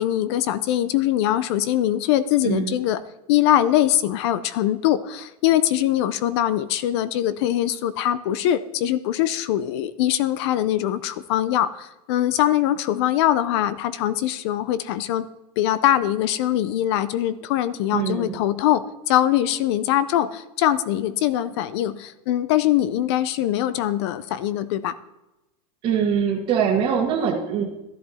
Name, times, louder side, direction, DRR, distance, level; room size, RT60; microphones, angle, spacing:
voice 1, 0.0-3.0 3.3-15.3 15.6-24.9, left 12 dB, 40° left, 16 dB, 0.5 m, -22 dB
voice 2, 2.4-2.8 17.9-18.3 25.8-27.7, right 7 dB, 25° right, -5 dB, 1.4 m, -23 dB
13.0 x 11.0 x 4.2 m, 0.95 s
supercardioid pair, 170°, 21 cm